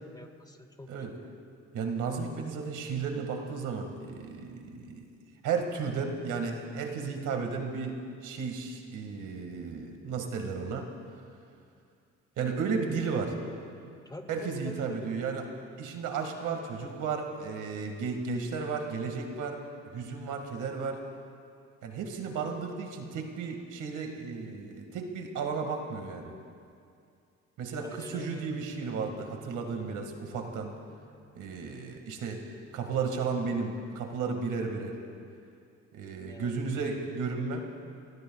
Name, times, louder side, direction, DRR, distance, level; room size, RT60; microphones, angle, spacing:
voice 1, 0.0-1.4 14.0-15.2 27.8-28.5 36.3-36.5, left 2 dB, 15° left, 7 dB, 0.9 m, -46 dB
voice 2, 1.7-5.1 5.4-10.9 12.4-13.3 14.3-15.4 15.8-19.6 19.9-21.0 21.8-26.3 27.6-30.7 31.3-32.4 32.7-35.0 35.9-37.6, right 5 dB, 80° right, 3 dB, 1.9 m, -34 dB
sound 1, 28.1-32.4, right 1 dB, 40° left, 2.7 m, -51 dB
29.0 x 18.5 x 2.3 m, 2.4 s
cardioid pair, 90°, 30 cm